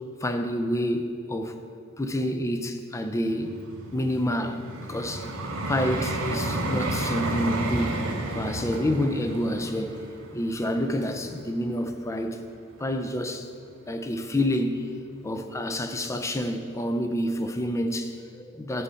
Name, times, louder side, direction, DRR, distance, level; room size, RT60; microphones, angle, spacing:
voice 1, 0.2-1.5 2.0-3.6 3.9-4.6 4.9-5.3 5.7-8.0 8.3-10.0 10.3-12.4 12.8-13.5 13.9-14.9 15.2-18.8, left 1 dB, 15° left, 7 dB, 0.4 m, -28 dB
Vehicle, 3.2-12.3 12.9-13.1, right 2 dB, 75° right, 0.8 m, -32 dB
11.0 x 4.1 x 5.6 m, 2.3 s
head